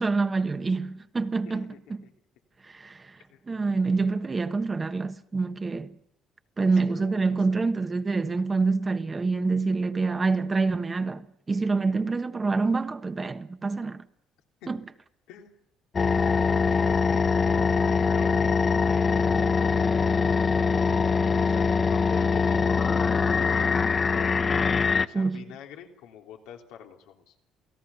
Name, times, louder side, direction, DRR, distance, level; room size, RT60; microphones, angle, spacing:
voice 1, 0.0-1.7 2.6-3.1 3.5-5.9 6.6-11.2 11.5-14.0 14.7-14.8 25.1-25.4, right 4 dB, 25° right, 1.3 m, -26 dB
voice 2, 1.4-2.1 3.3-3.4 6.9-7.6 14.6-14.7 15.3-15.6 16.0-17.8 18.1-18.4 18.8-19.2 19.5-19.8 21.4-24.3 25.0-27.3, left 9 dB, 85° left, 3.1 m, -45 dB
sound 1, 15.9-25.1, left 5 dB, 35° left, 1.0 m, -23 dB
28.5 x 17.0 x 7.0 m
cardioid pair, 85°, 0 cm